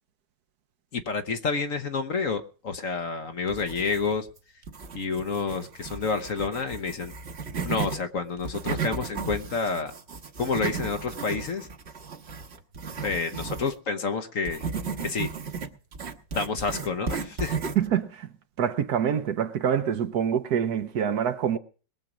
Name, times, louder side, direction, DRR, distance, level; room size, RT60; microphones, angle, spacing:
voice 1, 0.9-4.3 4.9-7.1 7.6-9.9 10.4-11.7 13.0-14.7 15.0-15.3 16.3-17.6, left 4 dB, 55° left, 1.3 m, -29 dB
sound 1, 3.5-4.3 4.6-8.0 8.4-13.7 14.4-17.9, right 5 dB, 40° right, 1.3 m, -34 dB
voice 2, 17.8-18.3 18.6-21.6, right 8 dB, 65° right, 1.3 m, -25 dB
21.5 x 7.4 x 5.0 m
omnidirectional pair, 1.9 m